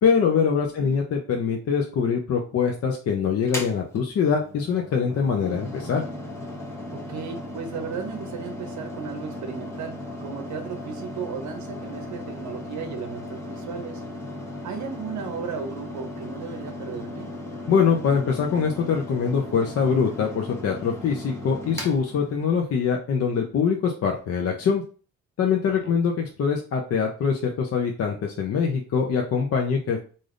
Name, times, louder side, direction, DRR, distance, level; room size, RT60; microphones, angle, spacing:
voice 1, 0.0-6.0 17.7-24.8 25.4-30.0, left 6 dB, 50° left, 2 dB, 0.6 m, -23 dB
voice 2, 0.5-0.9 6.9-14.0 14.6-17.3 25.7-26.0, right 6 dB, 70° right, 6 dB, 0.7 m, -35 dB
Mechanical fan, 3.4-22.8, left 1 dB, 10° left, 0.9 m, -37 dB
3.3 x 2.6 x 2.5 m, 0.38 s
cardioid pair, 90°, 30 cm